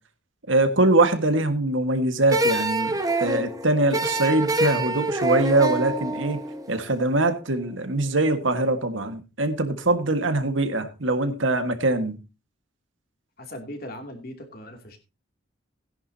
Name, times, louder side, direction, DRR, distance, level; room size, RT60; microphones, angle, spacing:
voice 1, 0.5-6.4 6.7-12.2, right 2 dB, 80° right, 8 dB, 1.7 m, -23 dB
sound 1, 2.3-7.4, right 1 dB, 20° right, 1.3 m, -26 dB
voice 2, 13.4-15.0, left 1 dB, 50° left, 5 dB, 2.8 m, -39 dB
17.0 x 10.5 x 2.8 m, 0.30 s
head